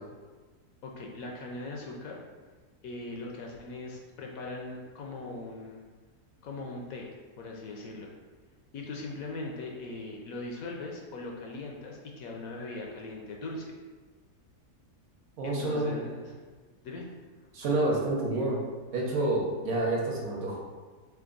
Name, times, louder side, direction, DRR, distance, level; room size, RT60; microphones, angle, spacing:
voice 1, 0.8-2.2 2.8-5.8 6.4-7.1 7.4-8.1 8.7-13.7 15.4-16.3 16.8-17.1, left 2 dB, 70° left, 0 dB, 0.9 m, -40 dB
voice 2, 15.4-16.0 17.5-18.6 18.9-20.6, right 2 dB, 65° right, -2 dB, 1.2 m, -28 dB
3.4 x 3.3 x 3.8 m, 1.4 s
omnidirectional pair, 1.7 m